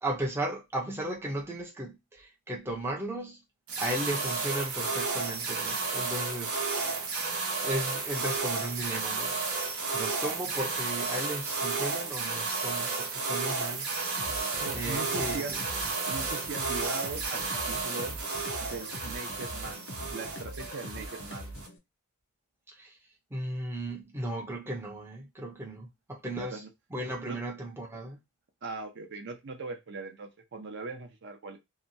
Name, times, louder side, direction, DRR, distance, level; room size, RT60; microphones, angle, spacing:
voice 1, 0.0-3.4 3.8-6.6 7.6-9.4 9.9-13.9 14.7-15.6 22.7-23.0 23.3-26.6 26.9-28.2, right 1 dB, 10° right, 0.5 m, -35 dB
sound 1, 3.7-21.7, right 4 dB, 80° right, 0.9 m, -32 dB
sound 2, 14.2-21.8, equal, 55° left, 0.6 m, -43 dB
voice 2, 14.6-15.6 16.1-18.2 18.6-21.5 26.3-26.7 27.3-27.4 28.6-31.6, right 3 dB, 55° right, 0.6 m, -40 dB
2.8 x 2.2 x 2.6 m
head